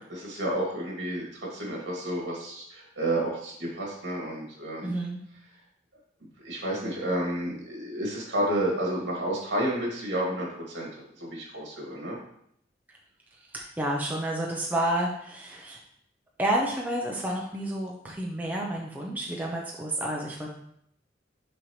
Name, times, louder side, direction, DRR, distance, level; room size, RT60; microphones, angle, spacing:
voice 1, 0.0-5.0 6.4-10.9 11.2-12.2, right 1 dB, 70° right, -3 dB, 2.4 m, -31 dB
voice 2, 4.8-5.2 13.5-15.8 16.4-20.5, right 1 dB, 10° right, -2 dB, 0.7 m, -30 dB
6.1 x 5.4 x 3.2 m, 0.70 s
head